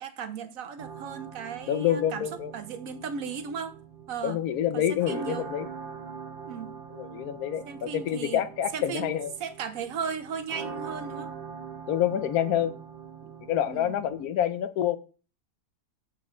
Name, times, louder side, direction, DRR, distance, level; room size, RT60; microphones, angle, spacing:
voice 1, 0.0-3.7 4.1-4.4 4.7-5.5 6.5-6.7 7.7-8.5 8.7-11.3 13.2-13.3 13.6-14.0, right 6 dB, 70° right, 1.2 m, -36 dB
sound 1, 0.8-14.2, right 6 dB, 45° right, 0.9 m, -43 dB
voice 2, 1.7-2.5 4.2-5.7 6.9-9.3 11.9-12.7 13.5-15.0, left 10 dB, 80° left, 1.1 m, -27 dB
7.4 x 6.1 x 3.7 m
omnidirectional pair, 1.5 m